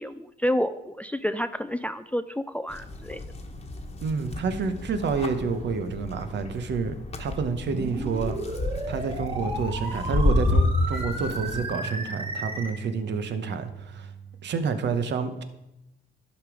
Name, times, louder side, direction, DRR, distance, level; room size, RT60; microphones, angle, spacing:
voice 1, 0.0-3.2, equal, 5° left, 12 dB, 0.4 m, -29 dB
sound 1, 2.7-11.7, left 2 dB, 30° left, 1.2 m, -30 dB
voice 2, 4.0-8.5 8.9-14.1 14.4-15.4, right 5 dB, 60° right, 9 dB, 1.0 m, -29 dB
sound 2, 7.7-12.7, right 2 dB, 25° right, 1.6 m, -34 dB
sound 3, 9.4-14.5, right 6 dB, 80° right, 3.0 m, -40 dB
11.5 x 5.2 x 5.0 m, 0.92 s
cardioid pair, 90°, 20 cm